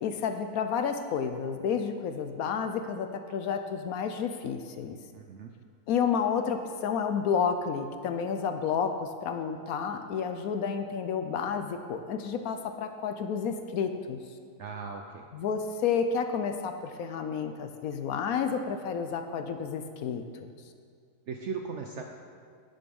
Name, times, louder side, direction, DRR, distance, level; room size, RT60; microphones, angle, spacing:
voice 1, 0.0-5.0 5.9-14.2 15.3-20.5, left 6 dB, 70° left, 7 dB, 0.9 m, -30 dB
voice 2, 5.1-5.6 14.6-15.3 21.3-22.0, right 5 dB, 65° right, 3 dB, 0.7 m, -38 dB
9.4 x 6.8 x 5.3 m, 2.1 s
omnidirectional pair, 1.7 m